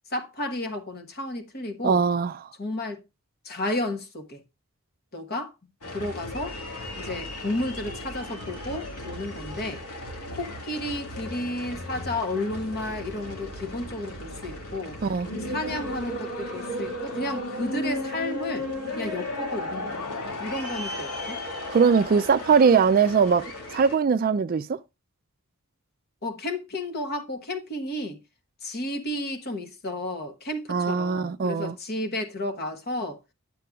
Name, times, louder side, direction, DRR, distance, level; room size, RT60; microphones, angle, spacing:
voice 1, 0.1-2.0 2.6-3.0 3.4-4.4 5.1-5.5 5.9-6.6 7.0-9.8 10.3-15.0 15.5-18.7 19.0-20.0 20.4-21.4 26.2-28.2 28.6-33.2, left 1 dB, 45° left, 1.2 m, -32 dB
voice 2, 1.8-2.3 15.0-15.3 21.7-23.5 23.7-24.7 30.7-31.8, right 6 dB, 40° right, 0.3 m, -21 dB
sound 1, 5.8-24.0, left 1 dB, 90° left, 2.2 m, -35 dB
10.5 x 7.5 x 2.4 m
head